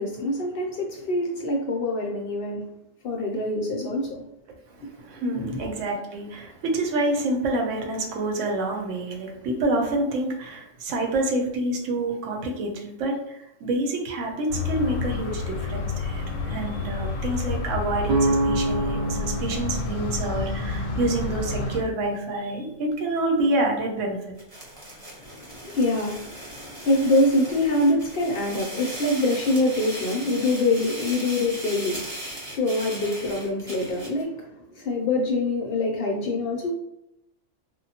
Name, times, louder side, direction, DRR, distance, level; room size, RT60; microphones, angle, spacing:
voice 1, 0.0-2.7 3.0-4.2 5.4-5.6 25.2-34.5 34.7-36.7, left 2 dB, 60° left, 0 dB, 0.6 m, -25 dB
voice 2, 4.8-24.2, right 2 dB, 75° right, 1 dB, 1.0 m, -27 dB
sound 1, 14.5-21.8, left 3 dB, 90° left, 1.0 m, -29 dB
sound 2, 18.1-21.9, right 2 dB, 60° right, 0.5 m, -28 dB
sound 3, 24.4-34.2, right 1 dB, 30° right, 0.8 m, -38 dB
3.5 x 2.1 x 2.8 m, 0.86 s
omnidirectional pair, 1.3 m